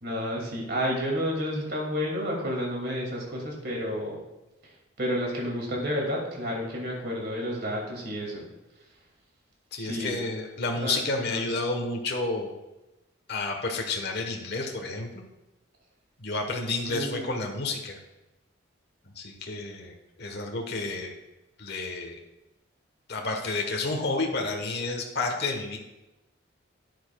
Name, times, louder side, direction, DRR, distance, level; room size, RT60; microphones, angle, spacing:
voice 1, 0.0-4.2 5.0-8.4 9.8-10.2 10.7-11.6 16.9-17.3, equal, 55° right, -2 dB, 2.4 m, -31 dB
voice 2, 9.7-12.5 13.3-15.2 16.2-18.0 19.1-21.1 21.6-22.2 23.1-25.8, left 3 dB, 55° left, 2 dB, 1.2 m, -30 dB
11.5 x 9.5 x 2.3 m, 1.0 s
head